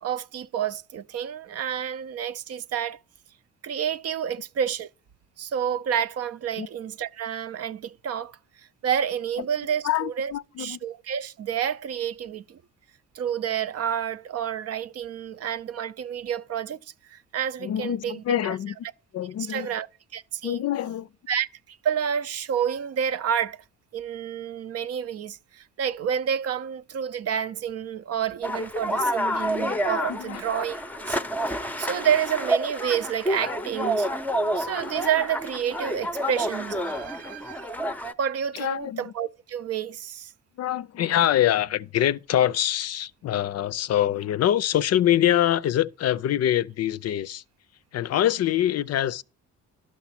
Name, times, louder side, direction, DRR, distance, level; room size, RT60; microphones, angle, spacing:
voice 1, 0.0-3.0 3.6-4.9 5.4-8.4 8.8-10.3 10.6-12.6 13.1-18.5 19.5-19.9 20.1-20.6 21.3-23.6 23.9-31.2 31.5-34.1 34.6-37.7 38.2-40.3, right 8 dB, 55° right, 0.5 m, -29 dB
voice 2, 9.8-10.8 17.6-18.8 19.1-19.7 20.4-21.1 30.2-30.4 38.5-39.1 40.6-47.4 47.9-49.2, left 11 dB, 55° left, 0.5 m, -24 dB
sound 1, 28.4-38.1, equal, 5° left, 0.6 m, -29 dB
12.0 x 6.0 x 5.8 m
cardioid pair, 90°, 30 cm